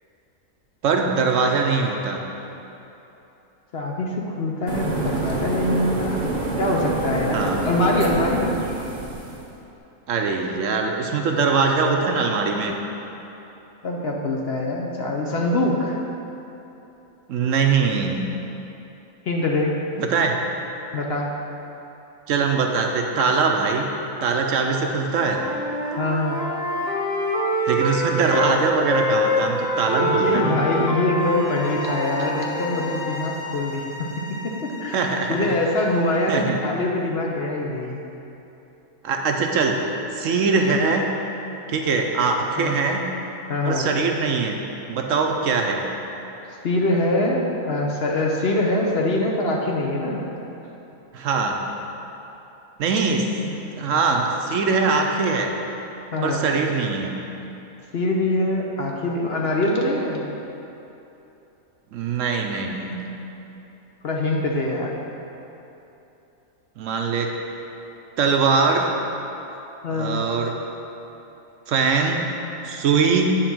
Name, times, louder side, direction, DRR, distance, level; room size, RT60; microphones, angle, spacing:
voice 1, 0.8-2.3 7.3-7.6 10.1-12.8 17.3-18.2 20.0-20.4 22.3-23.9 24.2-25.4 27.7-30.6 34.9-35.4 36.3-36.6 39.0-39.8 40.1-41.1 41.7-43.1 43.7-44.6 44.9-45.9 51.1-51.6 52.8-53.3 53.7-55.6 56.2-57.1 61.9-63.1 66.8-67.3 68.2-68.9 69.9-70.5 71.7-72.3 72.6-73.4, right 4 dB, 65° right, 3 dB, 0.9 m, -22 dB
voice 2, 3.7-6.3 6.6-8.5 13.8-16.0 19.2-19.8 20.9-21.3 25.9-26.4 30.0-38.0 42.6-42.7 43.5-43.9 46.6-50.2 53.4-53.5 56.1-56.4 57.9-60.2 64.0-65.0 69.8-70.2, left 2 dB, 55° left, -1 dB, 0.8 m, -24 dB
sound 1, 4.7-9.4, right 3 dB, 35° right, 0.9 m, -27 dB
Wind instrument woodwind instrument, 25.1-28.6 28.9-33.1, equal, 5° right, 0.8 m, -25 dB
sound 2, 31.2-36.3, left 3 dB, 75° left, 1.0 m, -36 dB
9.2 x 4.1 x 6.0 m, 3.0 s
omnidirectional pair, 1.5 m